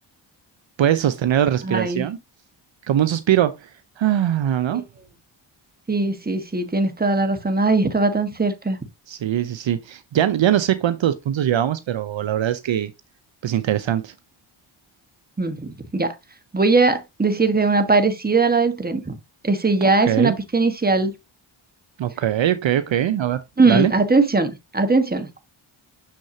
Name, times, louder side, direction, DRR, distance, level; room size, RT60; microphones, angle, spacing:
voice 1, 0.8-2.2 2.8-3.7 4.0-4.8 9.1-12.9 13.4-14.1 20.1-20.4 22.0-23.4 23.7-23.9, right 11 dB, 65° right, 0.7 m, -21 dB
voice 2, 1.6-2.1 4.7-4.8 5.9-8.8 15.4-16.1 16.5-19.2 19.4-21.1 23.6-25.3, right 3 dB, 20° right, 1.4 m, -20 dB
6.6 x 6.2 x 2.7 m
cardioid pair, 60°, 49 cm